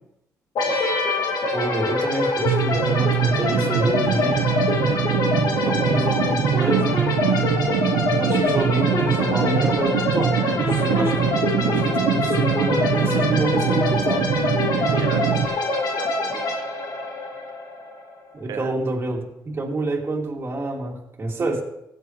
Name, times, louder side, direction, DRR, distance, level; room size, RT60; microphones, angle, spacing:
sound 1, 0.6-18.2, left 2 dB, 70° left, 2.3 m, -25 dB
voice 1, 1.5-4.5 5.6-7.0 8.2-11.3 11.7-14.3 18.3-21.6, right 2 dB, 35° right, -1 dB, 2.6 m, -27 dB
sound 2, 2.5-15.5, right 8 dB, 90° right, 0.9 m, -23 dB
voice 2, 14.9-16.6 18.5-18.7 21.4-21.6, right 7 dB, 70° right, 6 dB, 1.2 m, -37 dB
16.0 x 8.2 x 3.2 m, 0.82 s
cardioid pair, 80°, 7 cm